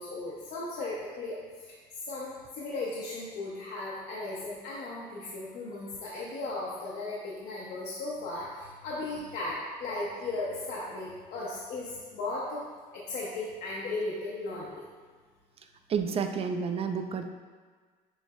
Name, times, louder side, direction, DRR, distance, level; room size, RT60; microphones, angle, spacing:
voice 1, 0.0-1.4 1.7-12.6 12.9-14.8, left 2 dB, 70° left, -6 dB, 0.7 m, -36 dB
voice 2, 15.9-17.3, right 6 dB, 35° right, 7 dB, 0.4 m, -30 dB
6.4 x 3.1 x 2.3 m, 1.5 s
cardioid pair, 110°, 17 cm